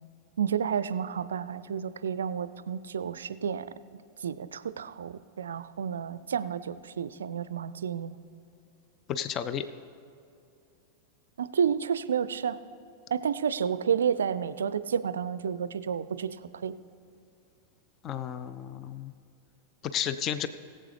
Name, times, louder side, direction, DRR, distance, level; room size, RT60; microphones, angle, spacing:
voice 1, 0.4-3.7 4.2-8.2 11.4-12.6 13.1-16.7, right 7 dB, 65° right, 15 dB, 0.4 m, -30 dB
voice 2, 9.1-9.7 18.0-19.1 19.8-20.5, left 9 dB, 30° left, 12 dB, 0.4 m, -32 dB
20.5 x 7.6 x 3.3 m, 2.6 s
figure-of-eight pair, 90°, 0 cm